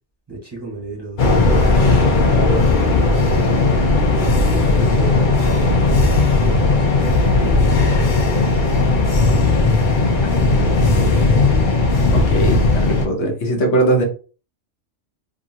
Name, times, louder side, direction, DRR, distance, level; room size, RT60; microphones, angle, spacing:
voice 1, 0.3-1.5 2.1-3.5 4.4-6.0 6.4-7.0 7.3-9.0 9.9-11.0, right 3 dB, 20° right, 1.2 m, -33 dB
sound 1, 1.2-13.1, left 3 dB, 50° left, 0.7 m, -16 dB
voice 2, 12.1-14.0, right 1 dB, 65° left, 1.1 m, -20 dB
2.7 x 2.7 x 2.7 m
omnidirectional pair, 1.3 m